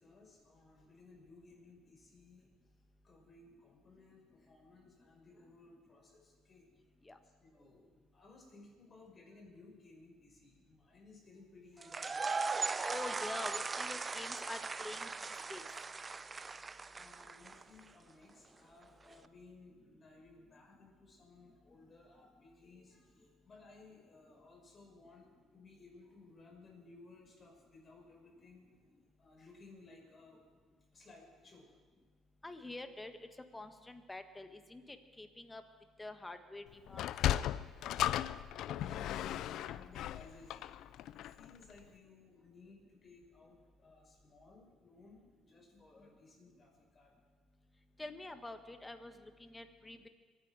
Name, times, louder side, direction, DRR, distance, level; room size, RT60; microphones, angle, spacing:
voice 1, 0.0-2.5 3.0-6.6 7.2-7.9 8.1-12.3 16.9-28.7 29.2-30.4 30.9-31.7 37.9-40.6 40.8-47.1, left 3 dB, 40° left, 0 dB, 5.9 m, -59 dB
sound 1, 11.8-17.8, right 4 dB, 30° right, 0.6 m, -39 dB
voice 2, 12.8-15.7 32.4-33.2 33.5-35.6 36.0-37.0 48.0-50.1, left 2 dB, 15° left, 8 dB, 1.5 m, -46 dB
Sliding door, 36.9-41.5, left 12 dB, 65° left, 0.4 m, -36 dB
23.5 x 9.8 x 5.0 m, 1.4 s
hypercardioid pair, 60°, 0 cm